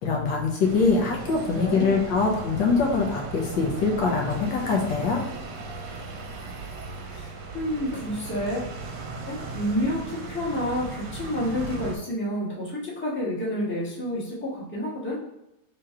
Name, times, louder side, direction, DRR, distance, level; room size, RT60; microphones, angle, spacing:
voice 1, 0.0-5.2, left 4 dB, 80° left, 0 dB, 1.5 m, -23 dB
sound 1, 0.6-12.0, right 3 dB, 75° right, 1.2 m, -37 dB
voice 2, 1.4-2.0 7.0-8.7 9.3-15.2, left 1 dB, 5° left, -7 dB, 1.1 m, -29 dB
3.8 x 3.0 x 4.6 m, 0.87 s
omnidirectional pair, 2.0 m